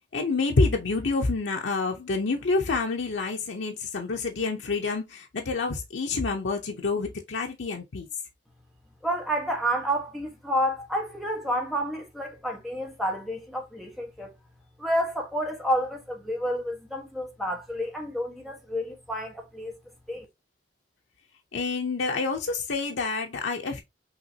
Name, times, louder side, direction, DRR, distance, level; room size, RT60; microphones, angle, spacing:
voice 1, 0.1-8.1 21.5-23.8, left 3 dB, 80° left, 0.7 m, -28 dB
voice 2, 9.0-14.3 14.8-19.7 20.1-20.2, equal, ahead, 1.1 m, -30 dB
5.8 x 2.9 x 2.7 m
head